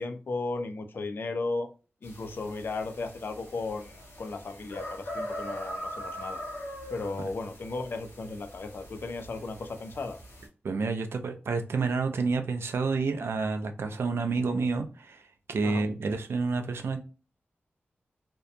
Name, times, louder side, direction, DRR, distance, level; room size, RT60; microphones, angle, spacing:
voice 1, 0.0-1.7 2.0-6.4 6.9-10.2 15.6-15.8, left 3 dB, 60° left, 0.4 m, -35 dB
sound 1, 2.0-10.5, equal, 80° left, 0.9 m, -41 dB
voice 2, 10.6-15.2 15.5-17.0, right 4 dB, 75° right, 0.4 m, -29 dB
2.7 x 2.1 x 2.4 m
wide cardioid pair, 135°, 4 cm